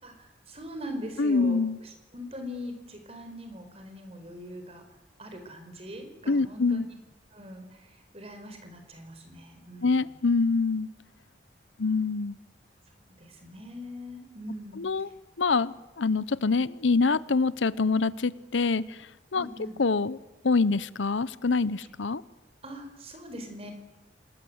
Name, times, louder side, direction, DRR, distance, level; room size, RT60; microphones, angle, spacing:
voice 1, 0.0-4.8 5.2-6.8 7.3-10.0 13.2-14.8 19.3-19.7 22.6-23.7, equal, 35° right, 6 dB, 4.6 m, -42 dB
voice 2, 1.2-1.8 6.3-6.9 9.8-10.9 11.8-12.4 14.8-15.1 15.4-19.0 19.3-19.5 19.8-20.2 20.4-22.2, left 4 dB, 90° left, 18 dB, 0.8 m, -25 dB
27.0 x 20.5 x 8.0 m, 1.0 s
head